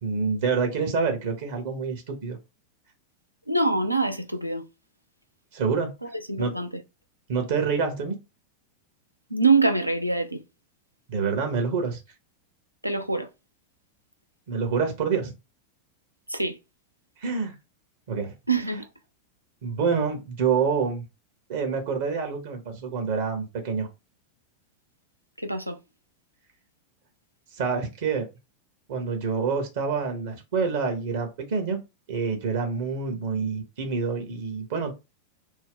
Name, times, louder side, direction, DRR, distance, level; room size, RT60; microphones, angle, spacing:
voice 1, 0.0-2.4 5.5-5.9 6.4-6.5 7.3-8.2 11.1-12.0 14.5-15.3 17.2-17.6 18.1-18.3 19.6-21.0 21.5-23.9 27.5-28.3 28.9-31.8 32.1-34.9, right 5 dB, 55° right, 0.8 m, -27 dB
voice 2, 3.5-4.6 6.0-6.7 9.3-10.4 12.8-13.3 16.3-16.6 18.5-18.8 25.4-25.8, right 3 dB, 90° right, 0.4 m, -24 dB
2.6 x 2.1 x 3.6 m
figure-of-eight pair, 90°, 0 cm